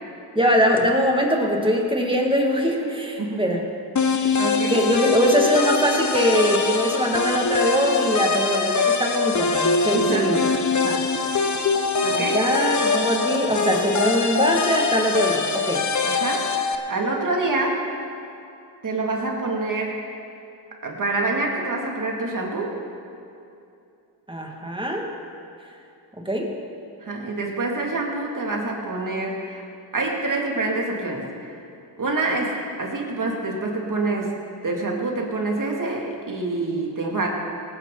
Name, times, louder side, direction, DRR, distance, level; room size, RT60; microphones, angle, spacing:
voice 1, 0.3-3.6 4.7-10.4 10.9-11.0 12.1-15.8 24.3-25.1 26.2-26.5, equal, 10° right, 0 dB, 2.4 m, -22 dB
sound 1, 4.0-16.8, left 4 dB, 40° left, 1.0 m, -23 dB
voice 2, 4.1-4.8 9.9-10.4 12.0-12.5 16.0-16.5 16.9-17.8 18.8-20.0 20.8-22.7 27.0-29.6 29.9-31.6 32.0-34.3 34.6-37.3, right 2 dB, 40° right, -1 dB, 2.8 m, -26 dB
18.0 x 9.9 x 4.2 m, 2.6 s
cardioid pair, 60°, 47 cm